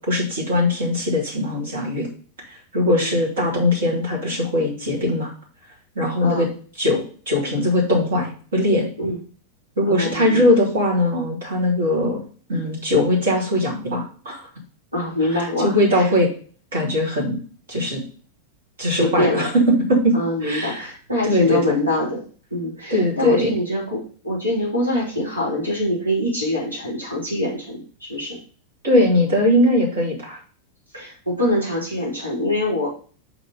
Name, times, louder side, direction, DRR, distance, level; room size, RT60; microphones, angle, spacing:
voice 1, 0.1-2.1 2.7-5.3 5.9-6.5 6.8-8.9 9.8-12.2 12.5-14.4 15.3-16.3 16.7-17.4 17.7-18.0 18.8-19.6 19.9-20.1 20.4-20.9 21.2-21.8 22.9-23.5 28.8-30.4, left 1 dB, 65° right, -2 dB, 3.2 m, -20 dB
voice 2, 2.8-3.1 6.2-6.5 9.0-9.2 9.8-10.5 14.9-16.1 18.8-19.5 20.1-22.2 22.5-28.4 30.9-32.9, left 1 dB, 80° right, -4 dB, 2.9 m, -24 dB
5.8 x 4.2 x 5.5 m, 0.41 s
figure-of-eight pair, 90°, 0 cm